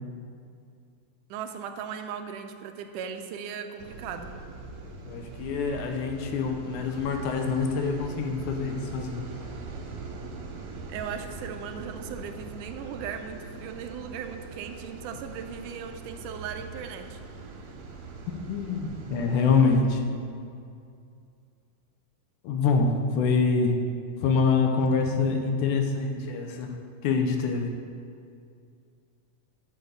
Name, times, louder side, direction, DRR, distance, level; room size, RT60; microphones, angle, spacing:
voice 1, 1.3-4.3 10.9-17.2, right 7 dB, 80° right, 6 dB, 2.1 m, -37 dB
sound 1, 3.8-19.8, right 3 dB, 65° right, 2.1 m, -42 dB
voice 2, 5.1-9.3 18.5-20.0 22.4-23.8 24.2-27.8, left 4 dB, 75° left, 4 dB, 2.3 m, -25 dB
11.5 x 6.5 x 6.8 m, 2.4 s
omnidirectional pair, 3.7 m